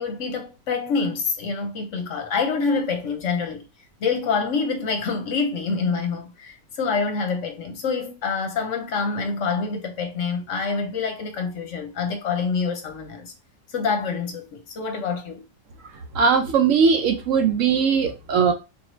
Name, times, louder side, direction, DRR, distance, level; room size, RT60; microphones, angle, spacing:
voice 1, 0.0-3.6 4.0-13.3 13.7-15.4, left 5 dB, 65° left, 0.8 m, -26 dB
voice 2, 16.1-18.5, right 6 dB, 65° right, 1.0 m, -19 dB
3.8 x 2.5 x 3.0 m
omnidirectional pair, 1.5 m